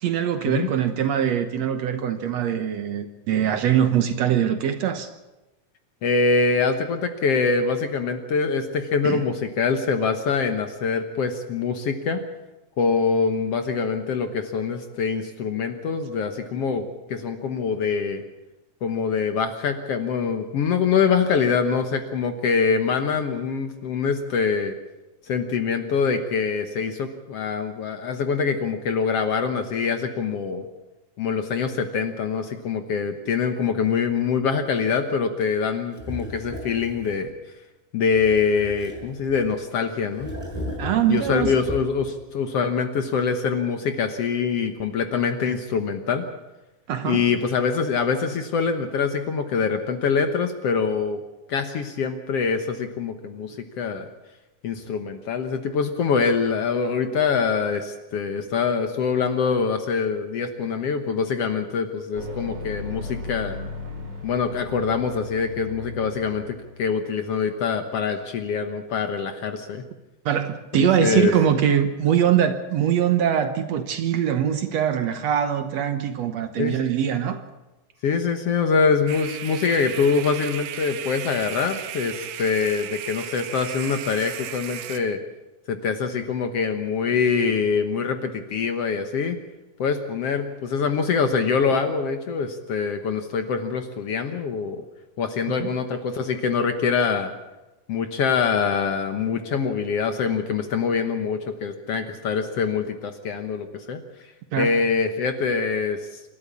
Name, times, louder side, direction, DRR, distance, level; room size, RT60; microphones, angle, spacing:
voice 1, 0.0-5.1 9.0-9.2 40.8-41.5 46.9-47.3 70.3-77.4 95.6-95.7 104.5-104.7, right 9 dB, 65° right, 2.0 m, -22 dB
voice 2, 6.0-12.2 12.8-18.2 18.8-24.8 25.2-30.7 31.2-37.3 37.9-40.3 41.1-46.3 47.0-51.2 51.5-54.1 54.6-63.6 64.2-69.8 70.8-71.3 76.6-76.8 78.0-85.2 85.7-89.4 89.8-94.8 95.2-97.3 97.9-104.0 104.6-106.0, left 5 dB, 60° left, 1.9 m, -24 dB
sound 1, 35.9-37.3 38.1-39.6 40.1-42.1, equal, 5° left, 6.1 m, -36 dB
sound 2, 62.1-67.0, left 2 dB, 35° right, 2.6 m, -36 dB
sound 3, 79.1-85.0, right 11 dB, 85° right, 2.6 m, -35 dB
27.0 x 12.0 x 8.4 m
omnidirectional pair, 3.7 m